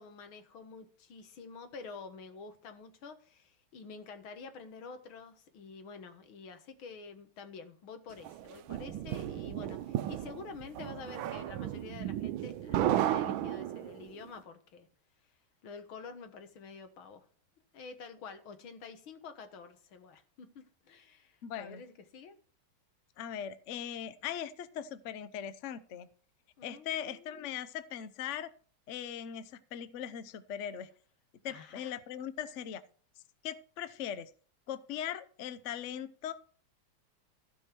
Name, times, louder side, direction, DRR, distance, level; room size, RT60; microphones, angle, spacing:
voice 1, 0.0-14.9 15.6-17.2 17.7-22.4 26.6-27.5 31.5-31.9, left 5 dB, 80° left, 2.2 m, -48 dB
sound 1, 8.3-14.1, right 12 dB, 80° right, 1.4 m, -34 dB
voice 2, 21.4-21.8 23.2-26.1 26.6-28.5 28.9-30.9 31.4-32.8 33.4-34.3 34.7-36.3, left 9 dB, 60° left, 0.8 m, -39 dB
15.5 x 5.4 x 6.0 m
omnidirectional pair, 2.2 m